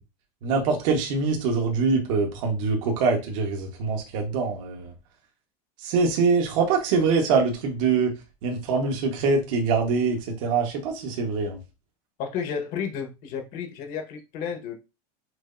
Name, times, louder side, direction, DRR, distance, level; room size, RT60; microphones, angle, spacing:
voice 1, 0.4-4.9 5.8-8.1 8.4-11.6, right 4 dB, 55° right, 1.3 m, -24 dB
voice 2, 12.2-14.7, left 7 dB, 45° left, 1.3 m, -32 dB
6.1 x 2.8 x 2.6 m
supercardioid pair, 155°, 20 cm